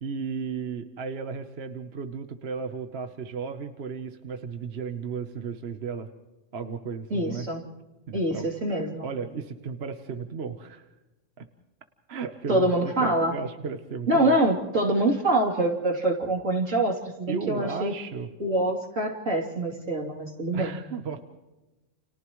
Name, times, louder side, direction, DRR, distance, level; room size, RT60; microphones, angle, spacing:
voice 1, 0.0-6.1 6.5-7.5 8.1-8.5 9.0-10.9 11.4-11.5 12.1-14.4 17.3-18.3 20.5-21.2, right 5 dB, 55° right, 7 dB, 1.2 m, -34 dB
voice 2, 7.1-7.6 8.1-9.1 12.5-13.4 14.1-17.9 18.4-20.8, right 1 dB, 80° right, 0 dB, 3.5 m, -25 dB
30.0 x 29.5 x 3.1 m, 1.1 s
omnidirectional pair, 1.3 m